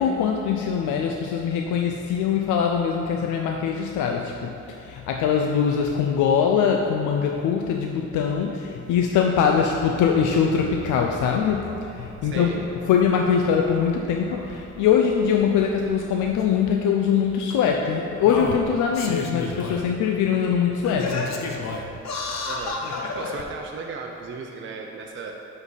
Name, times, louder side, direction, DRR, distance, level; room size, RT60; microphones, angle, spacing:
voice 1, 0.0-12.6 12.9-21.3, left 7 dB, 80° left, 2 dB, 0.5 m, -22 dB
Bark, 9.4-16.4, right 1 dB, 20° right, 1.3 m, -44 dB
voice 2, 12.2-12.6 18.9-19.1 22.5-25.3, right 4 dB, 40° right, 1 dB, 0.6 m, -36 dB
Singing, 16.4-16.5 17.5-17.6 18.2-19.8 20.3-20.4 20.8-23.4 24.2-24.3, left 4 dB, 60° left, 0.9 m, -30 dB
6.0 x 5.4 x 5.5 m, 2.7 s
cardioid pair, 90°, 30 cm